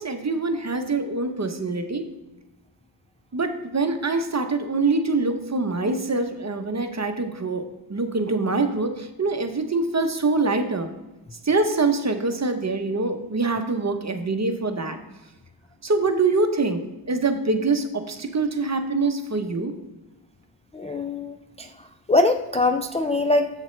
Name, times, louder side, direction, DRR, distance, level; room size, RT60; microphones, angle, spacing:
voice 1, 0.0-2.0 3.3-7.6 7.9-10.9 11.4-15.0 15.8-16.8 17.1-19.7, right 3 dB, 35° right, 7 dB, 0.9 m, -24 dB
voice 2, 20.7-21.7 22.1-23.5, left 2 dB, 15° left, 5 dB, 0.4 m, -22 dB
7.5 x 7.0 x 3.2 m, 1.0 s
wide cardioid pair, 75°, 47 cm